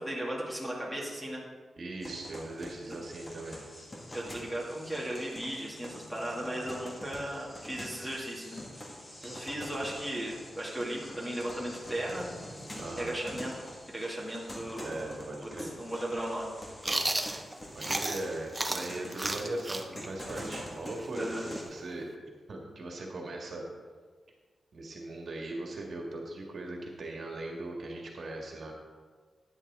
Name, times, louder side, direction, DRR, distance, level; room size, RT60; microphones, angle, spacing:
voice 1, 0.0-1.4 2.9-3.0 4.1-8.6 9.2-12.4 13.0-13.5 13.9-15.1 15.6-16.5 21.1-21.5, right 1 dB, 5° left, -4 dB, 2.2 m, -36 dB
voice 2, 1.8-3.6 12.8-13.1 14.8-15.7 17.7-22.1 22.5-23.6 24.7-28.7, right 2 dB, 55° right, 0 dB, 1.7 m, -39 dB
sound 1, 2.0-21.6, equal, 20° left, 1.7 m, -45 dB
Chewing mastication, 16.8-18.3 18.5-22.2, right 2 dB, 15° right, 0.6 m, -33 dB
12.0 x 9.7 x 3.6 m, 1.5 s
wide cardioid pair, 145°, 0 cm